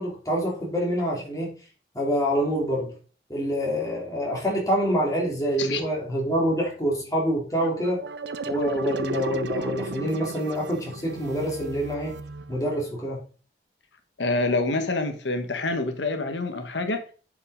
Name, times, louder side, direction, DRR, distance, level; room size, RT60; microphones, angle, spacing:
voice 1, 0.0-1.5 1.9-2.9 3.3-8.0 8.4-12.1 12.5-13.2, equal, 20° left, 3.3 m, -26 dB
sound 1, 7.5-12.9, right 3 dB, 75° right, 0.7 m, -35 dB
voice 2, 14.2-17.0, left 2 dB, 90° left, 1.3 m, -26 dB
8.5 x 5.6 x 5.0 m
head